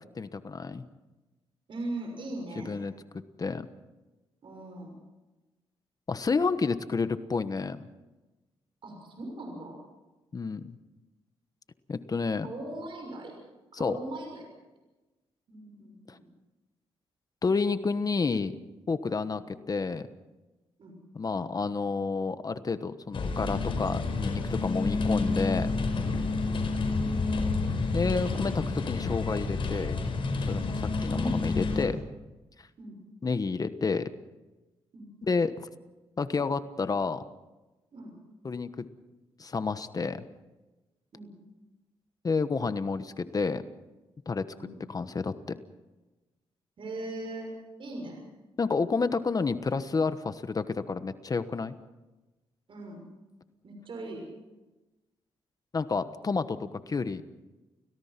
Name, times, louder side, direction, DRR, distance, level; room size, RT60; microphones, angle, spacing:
voice 1, 0.1-0.8 2.7-2.9 3.4-3.7 6.1-7.8 10.3-10.8 11.9-12.5 13.7-14.0 16.1-16.2 17.4-18.5 18.9-19.4 19.7-20.1 21.1-25.7 27.9-29.9 30.5-32.0 33.2-34.0 35.3-35.5 36.2-37.2 38.4-38.9 39.4-40.2 42.2-43.6 44.3-44.4 44.9-45.6 48.6-51.7 55.7-56.6 56.9-57.2, left 4 dB, 35° left, 11 dB, 1.2 m, -30 dB
voice 2, 1.7-2.7 4.4-4.9 8.8-9.8 12.4-13.4 13.7-14.5 15.5-16.3 19.2-19.4 20.8-21.0 31.1-31.4 32.8-33.0 34.9-35.1 37.9-38.2 41.1-41.3 44.5-44.8 46.8-47.5 47.8-48.2 52.7-53.1 53.6-54.3, right 2 dB, 60° right, 2 dB, 6.4 m, -39 dB
sound 1, 23.1-31.9, left 3 dB, 60° left, 5.2 m, -29 dB
29.5 x 17.5 x 6.0 m, 1.1 s
cardioid pair, 80°, 10 cm